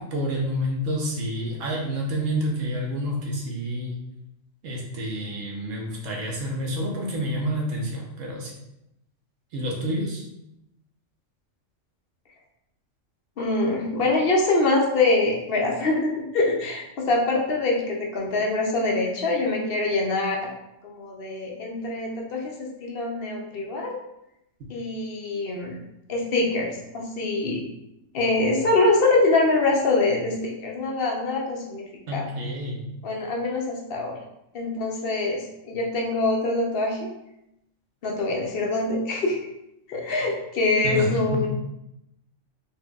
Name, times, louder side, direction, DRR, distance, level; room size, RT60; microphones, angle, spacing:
voice 1, 0.1-3.9 4.6-8.5 9.5-10.2 32.1-32.8 40.8-41.5, equal, 75° right, -1 dB, 1.3 m, -28 dB
voice 2, 13.4-20.5 20.8-24.0 24.7-25.8 26.1-27.6 28.1-31.9 32.1-32.2 33.0-34.2 34.5-37.1 38.0-39.4 39.9-41.5, left 2 dB, 55° left, 0 dB, 0.7 m, -24 dB
4.2 x 3.3 x 2.3 m, 0.86 s
omnidirectional pair, 1.4 m